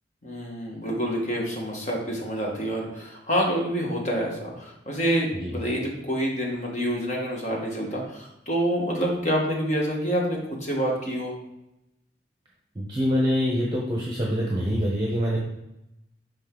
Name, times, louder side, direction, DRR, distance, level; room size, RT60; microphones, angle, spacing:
voice 1, 0.2-11.3, equal, 40° left, -2 dB, 1.6 m, -27 dB
voice 2, 12.7-15.4, equal, 25° right, -3 dB, 0.9 m, -25 dB
5.3 x 5.2 x 3.9 m, 0.86 s
head